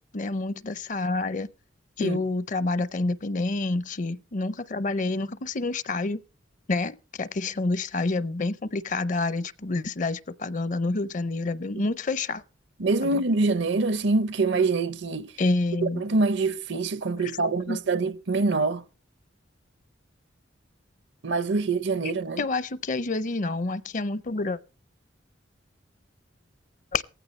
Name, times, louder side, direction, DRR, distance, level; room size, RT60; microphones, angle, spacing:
voice 1, 0.0-1.5 2.0-6.2 6.7-12.4 13.1-13.2 15.4-16.0 17.4-17.8 22.4-24.6 26.9-27.0, left 3 dB, 40° left, 0.6 m, -28 dB
voice 2, 12.8-15.3 15.8-18.8 21.2-22.4, right 3 dB, 65° right, 0.7 m, -25 dB
17.5 x 15.0 x 3.1 m
head